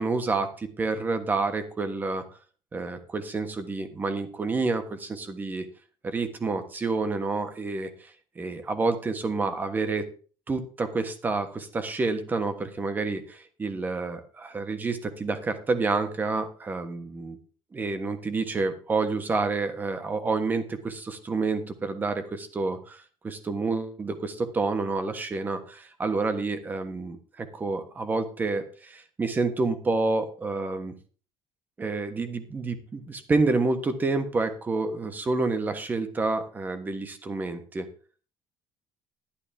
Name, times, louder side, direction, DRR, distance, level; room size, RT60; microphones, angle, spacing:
voice 1, 0.0-2.2 2.7-5.7 6.0-10.0 10.5-17.4 17.7-30.9 31.8-37.9, right 3 dB, 20° right, 8 dB, 1.3 m, -29 dB
12.0 x 11.5 x 3.5 m, 0.39 s
cardioid pair, 170°, 10 cm